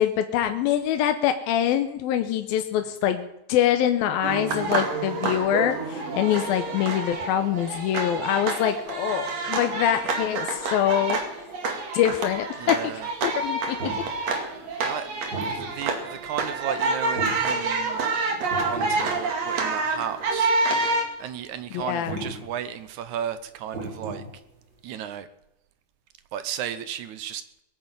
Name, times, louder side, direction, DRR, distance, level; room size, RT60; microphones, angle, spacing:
voice 1, 0.0-11.2 11.9-12.8 13.2-13.8 21.7-22.2, left 10 dB, 80° left, 2.7 m, -24 dB
sound 1, 4.2-21.0, right 3 dB, 50° right, 3.1 m, -28 dB
voice 2, 12.6-13.1 14.8-15.1 15.4-18.1 18.6-20.5 21.2-24.2 24.8-25.3 26.3-27.6, right 9 dB, 70° right, 1.9 m, -34 dB
sound 2, 12.8-16.2 16.4-16.8 17.0-17.7 18.0-19.2 19.5-19.8 20.2-20.3 20.6-21.2 21.9-22.4 23.0-23.2 23.6-24.7, right 2 dB, 30° right, 4.3 m, -35 dB
21.0 x 9.4 x 7.3 m
omnidirectional pair, 4.3 m